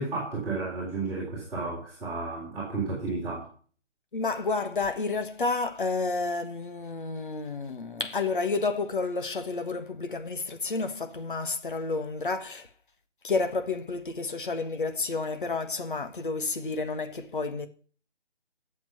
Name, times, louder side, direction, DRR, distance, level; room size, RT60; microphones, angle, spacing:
voice 1, 0.0-3.5, right 3 dB, 5° right, 3.7 m, -32 dB
voice 2, 4.1-12.7 13.2-17.7, left 3 dB, 45° left, 1.6 m, -30 dB
10.5 x 7.5 x 9.4 m
figure-of-eight pair, 155°, 36 cm